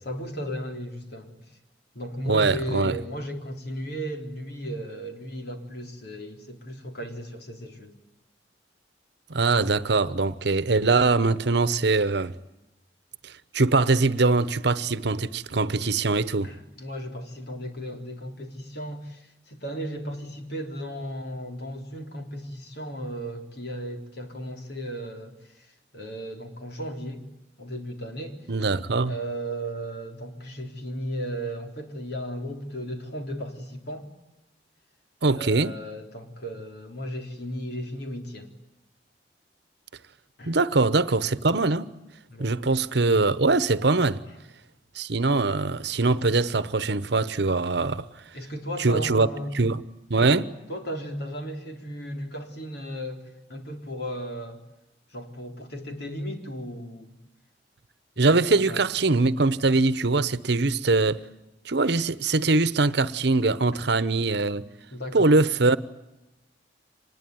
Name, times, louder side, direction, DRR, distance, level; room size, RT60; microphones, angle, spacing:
voice 1, 0.0-1.3 1.9-8.0 16.4-25.7 25.9-27.2 27.6-28.4 29.0-34.1 35.3-38.5 40.4-40.6 42.3-42.6 48.3-49.6 50.2-53.2 53.5-54.6 55.1-57.1 58.2-58.9 63.7-63.8 64.9-65.3, equal, 60° left, 3.7 m, -35 dB
voice 2, 2.3-3.0 9.3-12.3 13.2-16.5 28.5-29.1 35.2-35.7 40.5-41.9 42.4-44.2 44.9-48.1 48.8-49.3 49.5-49.8 50.1-50.5 58.2-61.2 61.6-64.7 65.1-65.8, right 3 dB, 65° right, 1.0 m, -22 dB
25.5 x 20.5 x 9.4 m
head